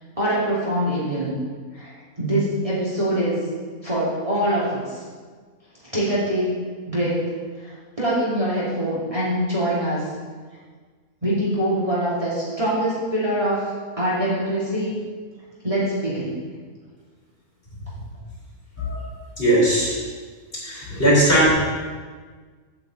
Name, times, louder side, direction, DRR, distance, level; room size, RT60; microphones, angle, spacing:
voice 1, 0.2-1.3 1.7-1.9 2.2-3.4 3.8-5.0 5.8-6.6 6.9-7.3 7.6-10.1 11.2-15.0 15.6-16.3, right 1 dB, 20° right, -9 dB, 2.8 m, -24 dB
voice 2, 19.4-20.0 20.5-21.5, right 1 dB, 35° left, -6 dB, 3.6 m, -19 dB
8.8 x 5.9 x 7.9 m, 1.5 s
omnidirectional pair, 1.7 m